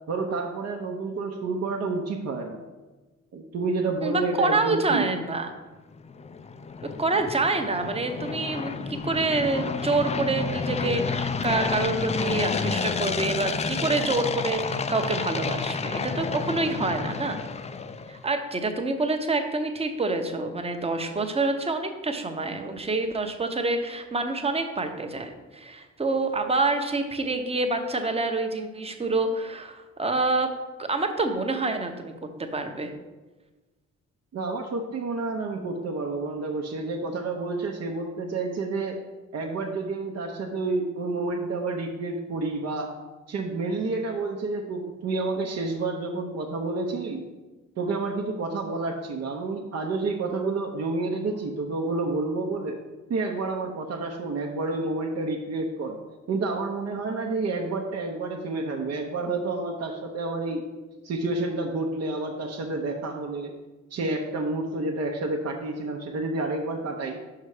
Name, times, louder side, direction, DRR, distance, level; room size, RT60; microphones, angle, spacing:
voice 1, 0.1-2.6 3.3-5.1 34.3-39.0 39.3-42.9 43.3-47.2 47.8-52.8 53.1-56.0 56.3-60.6 61.0-63.5 63.9-67.2, right 3 dB, 55° right, 1 dB, 0.8 m, -29 dB
voice 2, 4.0-5.5 7.0-17.4 18.1-30.5 30.8-32.1 32.4-32.9, right 3 dB, 20° right, 6 dB, 0.8 m, -27 dB
sound 1, 5.9-18.2, left 5 dB, 20° left, 0.4 m, -30 dB
5.7 x 5.5 x 4.9 m, 1.2 s
cardioid pair, 90°, 30 cm